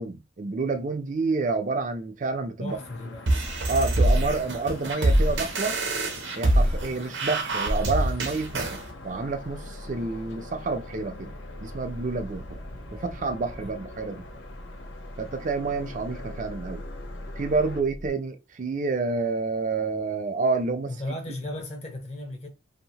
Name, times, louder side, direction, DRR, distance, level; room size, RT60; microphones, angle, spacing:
voice 1, 0.0-2.8 3.7-5.8 6.3-8.8 9.0-11.3 11.6-12.6 12.9-14.3 15.2-16.8 17.4-20.9, right 3 dB, 40° right, 0.4 m, -29 dB
voice 2, 2.6-3.3 13.6-13.8 20.9-22.5, left 1 dB, 35° left, 0.6 m, -35 dB
sound 1, 2.7-17.8, left 3 dB, 70° left, 0.5 m, -45 dB
sound 2, 3.3-8.8, right 1 dB, 70° right, 0.7 m, -24 dB
sound 3, 7.7-18.1, equal, 55° left, 1.1 m, -42 dB
2.7 x 2.0 x 2.7 m
head